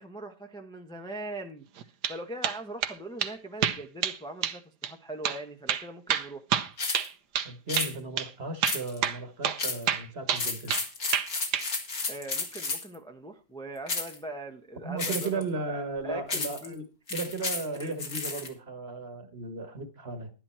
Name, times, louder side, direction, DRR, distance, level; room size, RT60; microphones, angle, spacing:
voice 1, 0.0-1.7 2.1-6.4 12.1-16.8 17.8-17.9, right 1 dB, 5° left, 4 dB, 0.8 m, -41 dB
sound 1, 1.8-2.2 2.4-2.9 3.2-3.3 3.6-4.2 4.4-4.6 4.8-4.9 5.2-5.4 5.7-7.5 7.8-8.3 8.6-9.6 9.9-10.9 11.1-11.7, right 9 dB, 70° right, 1.5 m, -28 dB
sound 2, 6.8-7.1 7.7-7.9 8.6-9.1 9.6-9.9 10.3-12.9 13.9-14.2 15.0-15.4 16.3-16.7 17.1-18.5, left 3 dB, 50° left, 2.7 m, -32 dB
voice 2, 7.4-10.7 14.8-16.8 17.1-20.3, right 3 dB, 35° right, 9 dB, 1.6 m, -35 dB
11.5 x 11.0 x 4.4 m, 0.31 s
omnidirectional pair, 1.9 m